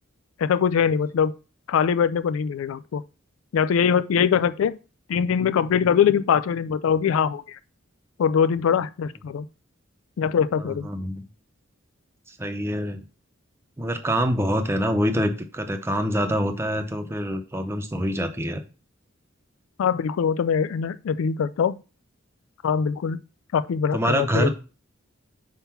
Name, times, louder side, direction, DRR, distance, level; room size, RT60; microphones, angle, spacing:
voice 1, 0.4-1.3 1.7-3.0 3.5-4.8 5.1-7.6 8.2-9.5 10.2-10.9 19.8-21.8 22.6-23.2 23.5-24.5, left 7 dB, 85° left, 0.3 m, -22 dB
voice 2, 10.6-11.2 12.3-13.0 13.8-18.6 23.9-24.5, equal, 15° right, 0.7 m, -25 dB
5.6 x 3.7 x 5.8 m
head